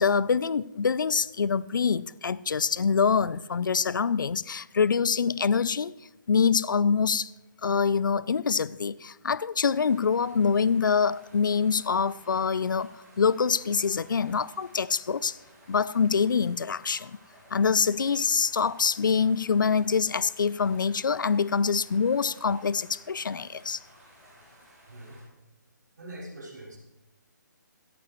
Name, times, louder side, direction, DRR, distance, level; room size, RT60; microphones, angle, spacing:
voice 1, 0.0-5.9 6.3-7.3 7.6-15.4 15.7-17.2 17.5-23.8, left 6 dB, 80° left, 0.5 m, -25 dB
sound 1, 9.8-25.2, right 1 dB, 15° right, 3.5 m, -56 dB
voice 2, 24.9-25.2 26.0-26.8, right 1 dB, 65° right, 6.3 m, -43 dB
27.0 x 9.0 x 3.1 m
hypercardioid pair, 170°, 10 cm